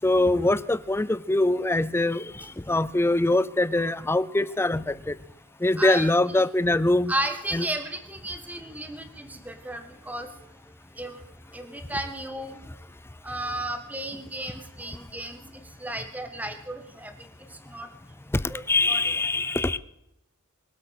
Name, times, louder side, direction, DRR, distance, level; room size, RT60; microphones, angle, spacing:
voice 1, 0.0-5.2 5.6-7.1 7.5-7.7 18.3-18.4 18.7-19.8, left 2 dB, 10° left, 16 dB, 0.5 m, -23 dB
voice 2, 5.8-6.4 7.1-10.3 11.0-11.2 11.5-12.6 13.2-15.4 15.8-17.1 17.7-17.9 18.5-18.6 18.9-19.0, right 1 dB, 5° right, 7 dB, 1.7 m, -33 dB
23.5 x 8.2 x 6.6 m, 0.88 s
head